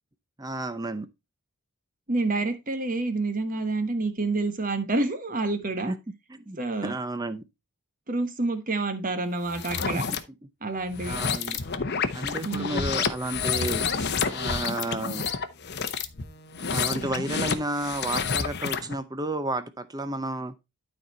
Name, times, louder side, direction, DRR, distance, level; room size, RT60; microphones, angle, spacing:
voice 1, 0.4-1.1 5.9-6.0 6.3-7.4 10.1-10.2 11.1-11.6 12.1-13.9 14.3-15.2 16.7-20.5, right 2 dB, 15° right, 0.6 m, -32 dB
voice 2, 2.1-5.9 6.6-6.9 8.1-10.0 10.6-11.2 12.4-12.9, right 2 dB, 35° right, 1.3 m, -28 dB
sound 1, 9.5-10.2 10.9-18.9, left 5 dB, 50° left, 0.9 m, -29 dB
12.0 x 4.2 x 4.2 m
head